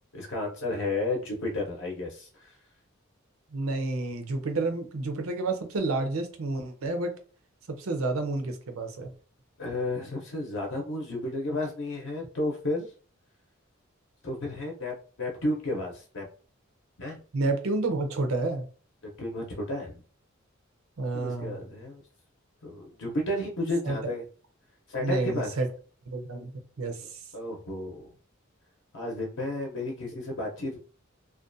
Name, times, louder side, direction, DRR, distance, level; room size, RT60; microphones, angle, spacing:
voice 1, 0.1-2.5 9.6-12.9 14.2-16.2 17.0-17.2 19.0-20.0 21.1-22.0 22.6-24.2 24.9-25.5 27.3-28.1 28.9-30.8, left 1 dB, 65° left, 0 dB, 0.6 m, -32 dB
voice 2, 3.5-7.1 7.8-9.1 17.3-18.6 21.0-21.7 23.8-24.0 25.0-25.7 26.1-27.2, right 2 dB, 85° right, 6 dB, 0.6 m, -30 dB
2.4 x 2.2 x 2.5 m, 0.39 s
head